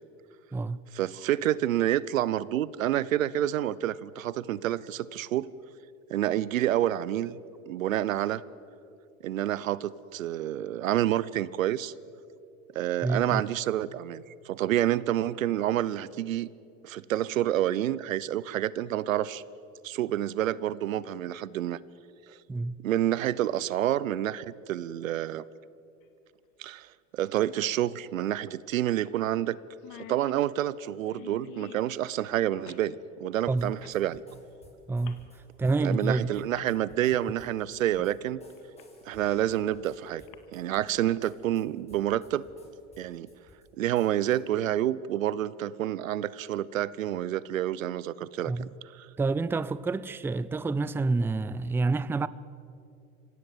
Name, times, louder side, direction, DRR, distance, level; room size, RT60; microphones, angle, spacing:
voice 1, 0.9-5.5 6.1-7.4 7.7-8.4 9.2-11.9 12.7-16.5 16.8-19.4 19.8-21.8 22.3-22.4 22.8-25.4 26.6-29.6 29.9-32.9 33.2-34.2 35.8-38.4 39.1-40.2 40.5-42.4 43.0-43.3 43.8-48.7 49.0-49.1, right 12 dB, 85° right, 0.8 m, -28 dB
voice 2, 13.0-13.4 22.5-22.7 33.5-33.8 34.9-35.2 35.6-36.3 48.5-48.7 49.2-52.3, right 3 dB, 5° right, 0.4 m, -28 dB
sound 1, 26.0-26.1 27.9-28.0 28.3-28.4 29.0-29.2 29.4-29.5 29.7-31.9 32.6-32.9 33.8-34.0 35.0-35.3 36.1-36.2 36.5-36.7 38.0-38.2 38.6-39.5 40.1-40.3, left 11 dB, 55° left, 2.0 m, -49 dB
sound 2, 33.6-44.6, left 1 dB, 15° left, 5.5 m, -58 dB
26.0 x 16.5 x 7.7 m
hypercardioid pair, 90°, 39 cm